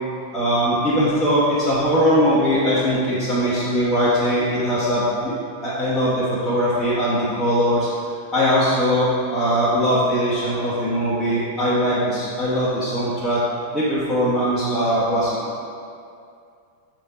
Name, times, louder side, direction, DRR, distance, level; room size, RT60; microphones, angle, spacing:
voice 1, 0.3-5.3 5.6-7.9 8.3-13.4 13.7-15.4, equal, 15° left, -11 dB, 1.2 m, -20 dB
6.6 x 3.7 x 3.9 m, 2.4 s
figure-of-eight pair, 90°, 0 cm